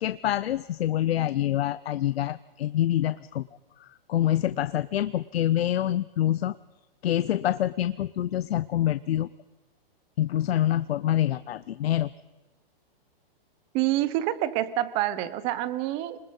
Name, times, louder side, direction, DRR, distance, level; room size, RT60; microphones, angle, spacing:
voice 1, 0.0-3.5 3.8-6.6 7.0-9.3 10.2-12.1, left 12 dB, 85° left, 15 dB, 0.7 m, -26 dB
voice 2, 13.7-16.2, right 14 dB, 20° right, 17 dB, 0.7 m, -27 dB
26.0 x 20.5 x 5.4 m, 1.2 s
hypercardioid pair, 170°, 30 cm